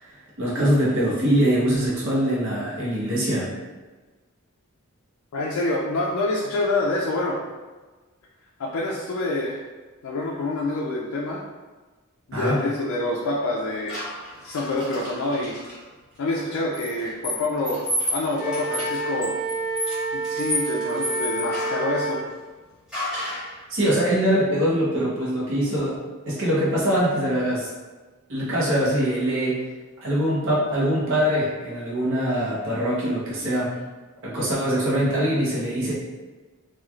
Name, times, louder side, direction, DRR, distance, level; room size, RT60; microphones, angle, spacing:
voice 1, 0.0-3.5 12.3-12.6 23.7-26.0 26.3-27.7 28.3-29.6 30.0-33.7 34.2-35.9, equal, 65° right, -6 dB, 0.9 m, -23 dB
voice 2, 5.3-7.4 8.6-9.6 10.0-11.4 12.3-14.0 14.4-15.6 16.2-17.8 18.1-19.3 20.1-22.2, left 2 dB, 75° left, -4 dB, 0.4 m, -26 dB
sound 1, 13.9-15.8 16.7-21.9 22.9-23.5, left 1 dB, 5° right, 1.2 m, -31 dB
Wind instrument woodwind instrument, 18.3-22.2, right 2 dB, 25° right, 1.3 m, -28 dB
3.0 x 2.3 x 2.4 m, 1.3 s
head